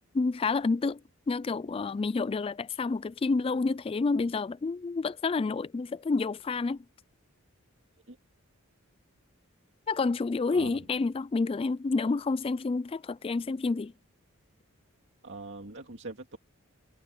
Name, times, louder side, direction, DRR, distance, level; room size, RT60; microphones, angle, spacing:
voice 1, 0.1-1.0 1.3-6.8 9.9-13.9, left 4 dB, 25° left, 0.3 m, -29 dB
voice 2, 10.5-10.8 15.2-16.4, right 2 dB, 60° right, 2.4 m, -42 dB
head